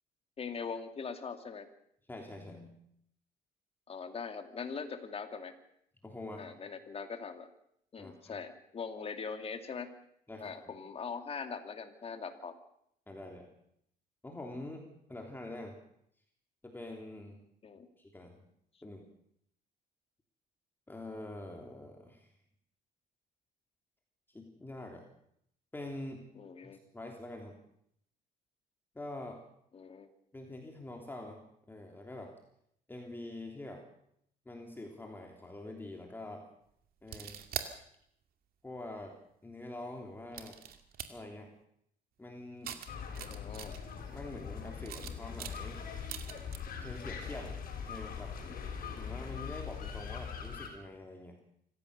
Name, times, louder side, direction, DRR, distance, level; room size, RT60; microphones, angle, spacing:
voice 1, 0.4-1.7 3.9-5.5 6.4-7.5 7.9-9.9 10.4-12.6 17.6-17.9 26.3-26.8 29.7-30.1 43.3-43.7, left 5 dB, 35° left, 7 dB, 2.5 m, -41 dB
voice 2, 2.1-2.8 6.0-6.5 8.0-8.4 10.3-10.7 13.1-13.5 14.2-14.8 15.1-15.8 16.6-17.4 18.0-18.4 18.8-19.0 20.9-22.3 24.3-25.0 25.7-26.2 26.6-27.6 28.9-29.4 30.3-31.4 31.7-32.3 32.9-33.8 34.4-36.4 37.0-37.4 38.6-39.1 39.4-40.6 41.1-41.5 42.2-42.7 44.1-45.8 46.4-46.5 46.8-47.5 47.9-48.3 49.0-51.4, left 2 dB, 10° left, 1 dB, 3.3 m, -45 dB
sound 1, 37.0-37.7 38.8-38.9 40.3-41.1 42.6-44.0 44.8-46.6, right 9 dB, 60° right, 2.3 m, -42 dB
sound 2, 42.9-50.7, left 7 dB, 55° left, 6.4 m, -42 dB
26.0 x 15.5 x 6.8 m, 0.73 s
cardioid pair, 110°, 17 cm